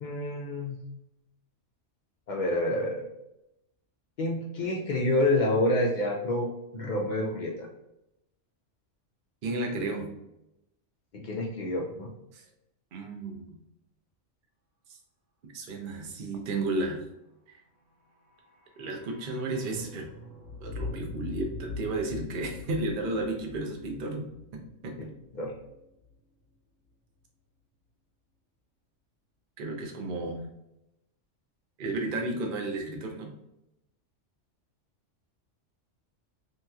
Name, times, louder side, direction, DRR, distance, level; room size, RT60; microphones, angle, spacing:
voice 1, 0.0-0.8 2.3-3.0 4.2-7.7 11.1-12.1 25.3-25.5, left 1 dB, 65° left, -1 dB, 0.4 m, -28 dB
voice 2, 9.4-10.1 12.3-12.4 12.9-13.6 14.9-15.0 15.5-17.0 17.5-17.6 18.8-20.1 20.6-25.1 29.6-30.4 31.8-33.3, right 2 dB, 55° right, 3 dB, 0.6 m, -33 dB
sound 1, 18.0-26.1 26.4-26.5, left 3 dB, 90° right, 1.3 m, -42 dB
3.0 x 2.8 x 2.3 m, 0.86 s
omnidirectional pair, 1.3 m